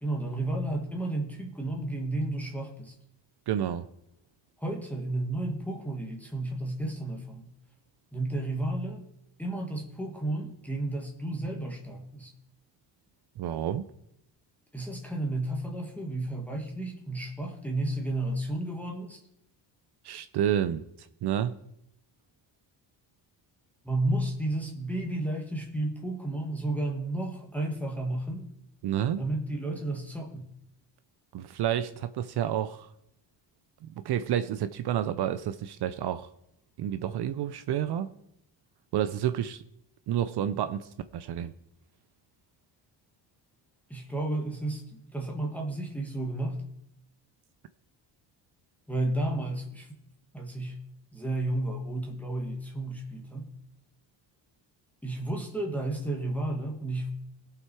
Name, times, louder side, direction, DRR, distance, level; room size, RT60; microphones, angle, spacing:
voice 1, 0.0-2.9 4.6-7.5 8.1-9.1 9.4-12.3 14.7-19.2 23.8-28.5 29.2-30.5 43.9-46.6 48.9-49.9 50.3-50.8 51.1-53.5 55.0-57.1, right 2 dB, 5° left, 0 dB, 1.5 m, -32 dB
voice 2, 3.5-3.8 13.4-13.9 20.0-20.9 21.2-21.5 28.8-29.2 31.3-32.9 33.8-36.3 36.8-38.1 38.9-39.6 40.1-41.5, right 10 dB, 60° right, 12 dB, 0.6 m, -29 dB
17.5 x 5.8 x 4.7 m, 0.78 s
cardioid pair, 105°, 45 cm